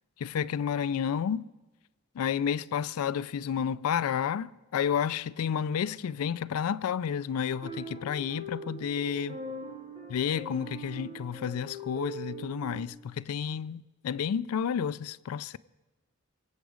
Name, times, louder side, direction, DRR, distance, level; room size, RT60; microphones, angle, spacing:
voice 1, 0.2-1.4 2.2-9.4 10.1-15.6, left 8 dB, 75° left, 0.3 m, -31 dB
sound 1, 7.5-12.9, right 1 dB, 25° right, 1.8 m, -41 dB
23.5 x 8.1 x 5.0 m
head